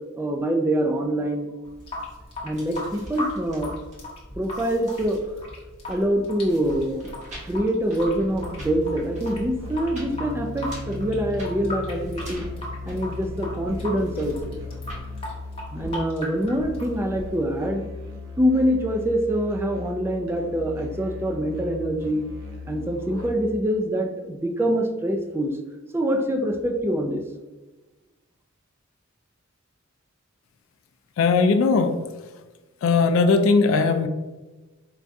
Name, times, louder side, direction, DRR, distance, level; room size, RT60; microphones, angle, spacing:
voice 1, 0.2-1.5 2.4-3.7 4.4-5.2 5.9-7.1 7.4-12.5 12.9-14.6 15.7-17.9 18.4-22.2 22.7-25.6 25.9-27.2, equal, 10° right, 3 dB, 0.3 m, -25 dB
Water tap faucet / Sink (filling or washing) / Drip, 1.6-17.6, left 1 dB, 30° left, 0.9 m, -37 dB
sound 1, 1.8-15.1, equal, 35° right, 0.9 m, -43 dB
Musical instrument, 8.3-23.6, left 3 dB, 85° right, 0.8 m, -37 dB
voice 2, 31.2-32.0 32.8-34.1, left 4 dB, 70° left, 7 dB, 0.3 m, -19 dB
4.6 x 2.2 x 2.6 m, 1.2 s
head